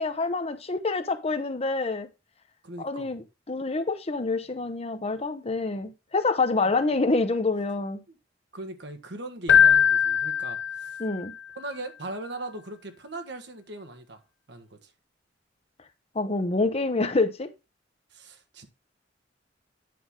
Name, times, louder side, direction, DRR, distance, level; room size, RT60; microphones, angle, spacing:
voice 1, 0.0-2.1 2.8-8.0 11.0-11.3 16.1-17.5, left 3 dB, 35° left, 0.8 m, -27 dB
voice 2, 2.6-3.1 6.6-6.7 8.1-8.2 8.5-11.0 11.5-14.2 14.5-14.9 18.1-18.7, right 2 dB, 65° right, 1.5 m, -39 dB
Keyboard (musical), 9.5-11.3, left 8 dB, 70° left, 0.5 m, -21 dB
9.4 x 5.8 x 3.7 m
head